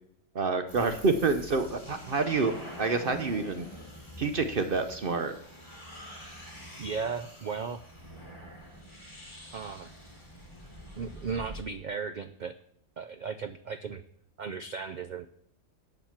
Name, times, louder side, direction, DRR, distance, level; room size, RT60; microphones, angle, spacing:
voice 1, 0.3-3.7 4.2-5.3, right 4 dB, 50° right, 8 dB, 0.8 m, -28 dB
sound 1, 0.7-11.6, equal, 20° left, 2.7 m, -46 dB
voice 2, 6.8-7.8 9.5-9.9 11.0-12.5 13.0-14.0 14.4-15.3, right 5 dB, 70° right, 11 dB, 0.4 m, -36 dB
8.0 x 7.2 x 7.3 m, 0.70 s
omnidirectional pair, 1.4 m